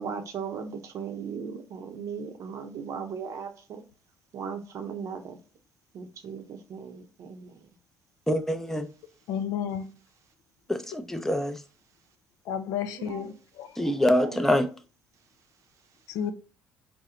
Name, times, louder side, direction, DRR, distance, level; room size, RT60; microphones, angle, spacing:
voice 1, 0.0-3.8 4.3-5.4 5.9-7.6 12.8-13.3 13.8-14.4, right 6 dB, 60° right, 0.6 m, -38 dB
voice 2, 8.3-8.9 10.7-11.6 13.8-14.7, left 1 dB, 5° left, 0.5 m, -25 dB
voice 3, 9.3-9.8 12.5-13.7 16.1-16.3, left 8 dB, 75° left, 0.4 m, -31 dB
4.3 x 2.0 x 3.7 m
supercardioid pair, 85°, 6 cm